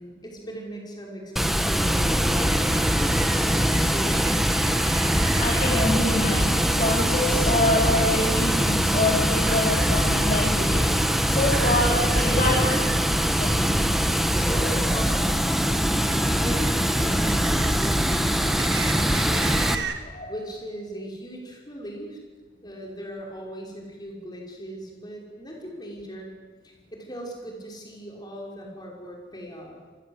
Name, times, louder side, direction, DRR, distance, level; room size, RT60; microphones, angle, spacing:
voice 1, 0.0-4.3 12.1-12.9 14.3-15.3 15.6-19.8 20.3-22.2 22.6-26.3 26.6-29.8, equal, 20° left, 0 dB, 5.7 m, -38 dB
Water, 1.4-19.7, equal, ahead, 1.3 m, -22 dB
sound 1, 2.4-5.9 7.9-8.2 9.4-10.5 11.0-13.0 16.1-20.0, right 6 dB, 70° right, 1.9 m, -36 dB
voice 2, 5.4-12.6 13.3-13.5 20.1-20.3, left 1 dB, 40° left, -1 dB, 3.5 m, -26 dB
27.5 x 20.5 x 8.2 m, 1.5 s
head